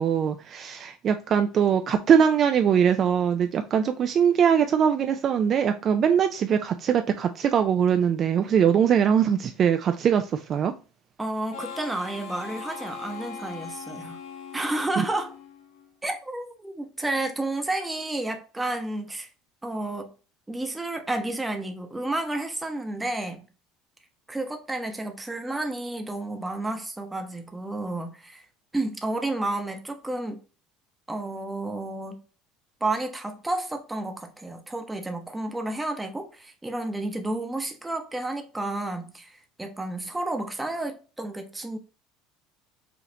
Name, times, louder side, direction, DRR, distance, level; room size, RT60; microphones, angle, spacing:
voice 1, 0.0-10.7, right 8 dB, 40° right, 0.3 m, -22 dB
voice 2, 11.2-14.2 14.5-15.3 16.0-19.3 19.6-20.1 20.5-23.5 24.3-28.4 28.7-30.4 31.1-32.2 32.8-41.8, right 2 dB, 10° right, 0.7 m, -31 dB
Harmonica, 11.5-16.0, left 5 dB, 75° left, 1.5 m, -40 dB
5.1 x 2.4 x 2.7 m
cardioid pair, 130°, 0 cm